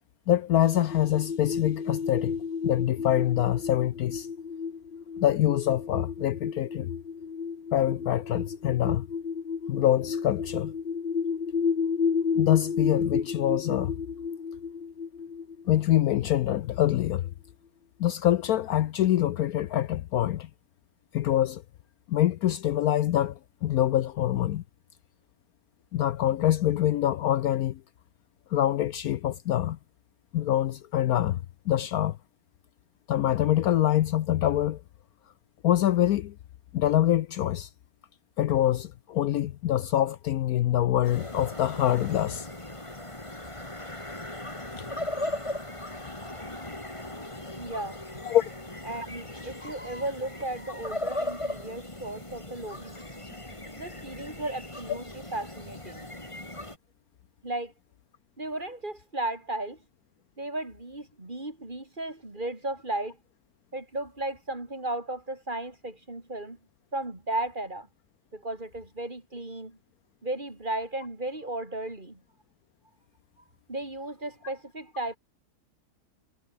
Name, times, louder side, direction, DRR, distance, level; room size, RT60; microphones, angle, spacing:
voice 1, 0.3-2.3 2.6-4.3 5.2-6.9 7.7-9.0 9.7-10.7 12.3-13.9 15.7-17.3 18.0-20.5 21.1-21.6 22.1-24.6 25.9-27.8 28.5-29.8 30.3-32.2 33.1-34.8 35.6-36.3 36.7-37.7 38.4-42.5 44.8-44.9 48.2-48.5, left 12 dB, 70° left, 1.1 m, -25 dB
sound 1, 0.6-16.9, left 5 dB, 35° left, 1.2 m, -32 dB
sound 2, 41.0-56.8, left 1 dB, 15° left, 3.6 m, -38 dB
voice 2, 47.6-48.0 48.8-53.0 53.8-56.1 57.4-57.7 58.4-59.8 60.4-63.2 63.7-66.6 66.9-67.9 68.3-69.8 70.2-72.2 73.7-75.2, right 2 dB, 30° right, 4.0 m, -35 dB
omnidirectional pair, 1.8 m